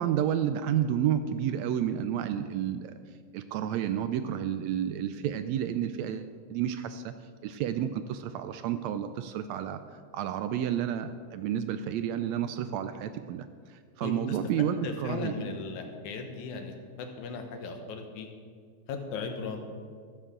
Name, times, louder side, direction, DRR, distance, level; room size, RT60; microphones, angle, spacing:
voice 1, 0.0-2.9 3.3-7.1 7.4-9.8 10.1-13.4 14.0-15.3, right 10 dB, 80° right, 10 dB, 1.7 m, -30 dB
voice 2, 14.0-14.4 14.8-16.7 17.0-18.3 18.9-19.6, left 4 dB, 80° left, 4 dB, 2.6 m, -37 dB
14.5 x 13.0 x 3.8 m, 2.1 s
omnidirectional pair, 3.4 m